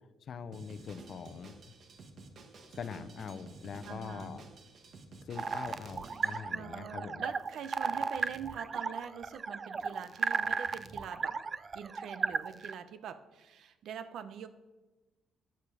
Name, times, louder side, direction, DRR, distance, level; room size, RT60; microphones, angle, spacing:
voice 1, 0.2-1.5 2.7-4.4 5.3-7.2, left 6 dB, 45° left, 12 dB, 0.7 m, -43 dB
Drum kit, 0.5-6.4, right 3 dB, 50° right, 1.5 m, -52 dB
voice 2, 3.8-4.4 6.5-11.4 11.7-14.5, right 8 dB, 65° right, 11 dB, 0.8 m, -44 dB
sound 1, 5.3-12.7, right 5 dB, 30° right, 0.4 m, -35 dB
12.0 x 9.1 x 4.9 m, 1.1 s
cardioid pair, 130°, 0 cm